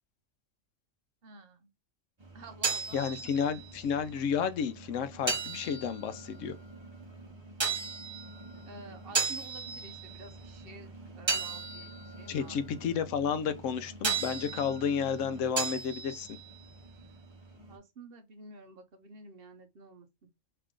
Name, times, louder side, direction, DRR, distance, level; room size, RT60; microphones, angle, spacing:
voice 1, 1.2-1.7 2.3-3.6 8.7-12.6 17.7-20.1, right 3 dB, 55° right, 0.8 m, -50 dB
sound 1, 2.2-17.8, right 5 dB, 25° right, 0.8 m, -37 dB
voice 2, 2.9-6.5 12.3-16.4, left 7 dB, 80° left, 0.9 m, -31 dB
3.3 x 2.9 x 3.6 m
omnidirectional pair, 1.3 m